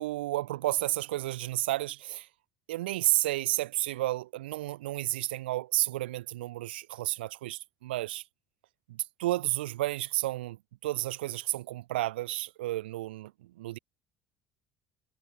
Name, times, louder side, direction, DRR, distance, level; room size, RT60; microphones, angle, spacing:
voice 1, 0.0-2.3 2.7-8.2 8.9-10.6 10.8-13.3 13.6-13.8, right 16 dB, 70° right, 0.6 m, -31 dB
figure-of-eight pair, 55°, 6 cm